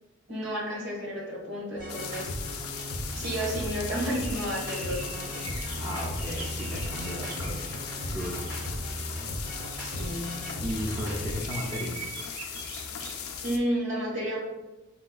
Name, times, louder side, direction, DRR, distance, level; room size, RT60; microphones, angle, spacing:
voice 1, 0.3-2.3 3.1-5.4 9.7-10.2 13.4-14.4, equal, 55° right, -5 dB, 1.3 m, -32 dB
sound 1, 1.8-11.4, equal, 35° right, 0.9 m, -36 dB
sound 2, 1.9-13.6, left 7 dB, 80° left, 0.4 m, -38 dB
sound 3, 3.6-13.4, right 5 dB, 90° right, 0.4 m, -45 dB
voice 2, 5.8-7.8 8.1-8.5 10.6-12.0, equal, 20° right, -3 dB, 0.3 m, -34 dB
4.6 x 2.2 x 2.3 m, 1.1 s
head